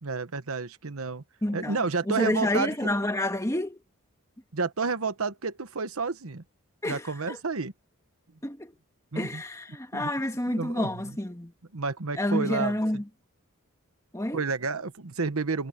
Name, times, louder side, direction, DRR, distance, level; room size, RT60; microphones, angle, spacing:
voice 1, 0.0-1.2 1.5-2.9 4.5-6.4 6.8-7.7 9.1-9.4 9.9-11.2 11.7-12.8 14.3-15.7, right 4 dB, 70° right, 1.1 m, -30 dB
voice 2, 1.4-1.8 2.1-3.8 6.8-7.0 7.3-7.4 8.4-8.7 9.2-11.5 12.2-13.0 14.1-14.4, left 1 dB, 15° left, 1.9 m, -29 dB
head